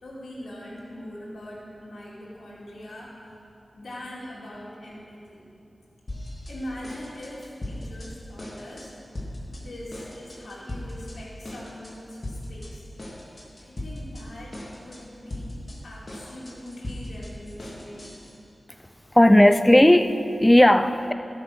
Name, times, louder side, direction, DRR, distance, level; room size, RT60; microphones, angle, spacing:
voice 1, 0.0-3.1 3.7-5.5 6.5-8.9 9.5-12.9 13.6-18.2, left 1 dB, 85° left, -6 dB, 2.5 m, -41 dB
sound 1, 6.1-6.6 6.8-8.1 8.4-8.9 9.1-9.6 9.9-11.2 11.4-11.9 12.2-12.7 13.0-14.2 14.5-15.0 15.3-18.3, left 1 dB, 50° left, 2.7 m, -38 dB
voice 2, 19.1-21.1, left 1 dB, 15° left, 10 dB, 0.6 m, -16 dB
13.5 x 6.2 x 6.3 m, 2.6 s
cardioid pair, 40°, 0 cm